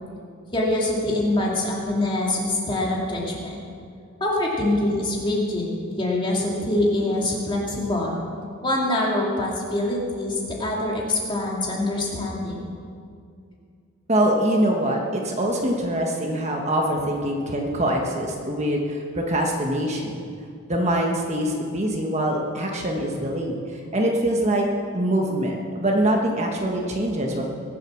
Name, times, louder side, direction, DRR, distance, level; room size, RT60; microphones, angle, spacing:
voice 1, 0.5-3.6 4.2-5.7 6.0-8.2 8.6-12.7, left 1 dB, 20° left, -3 dB, 2.6 m, -24 dB
voice 2, 14.1-20.2 20.7-24.6 24.9-27.4, right 1 dB, 30° right, 0 dB, 1.3 m, -24 dB
22.0 x 7.8 x 6.3 m, 2.3 s
head